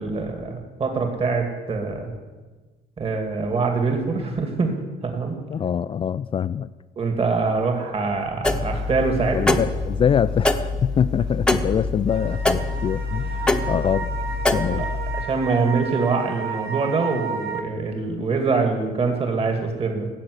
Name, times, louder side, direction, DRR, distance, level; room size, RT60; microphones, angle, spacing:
voice 1, 0.0-2.1 3.0-4.7 5.0-5.4 7.0-9.6 15.3-20.1, right 4 dB, 35° right, 4 dB, 2.5 m, -24 dB
voice 2, 5.5-6.7 9.3-14.1 14.5-14.9, left 8 dB, 35° left, 13 dB, 0.4 m, -24 dB
sound 1, 8.4-15.2, left 2 dB, 5° left, 1.0 m, -25 dB
sound 2, 12.1-17.6, right 7 dB, 70° right, 2.0 m, -33 dB
16.0 x 7.5 x 9.7 m, 1.3 s
cardioid pair, 110°, 17 cm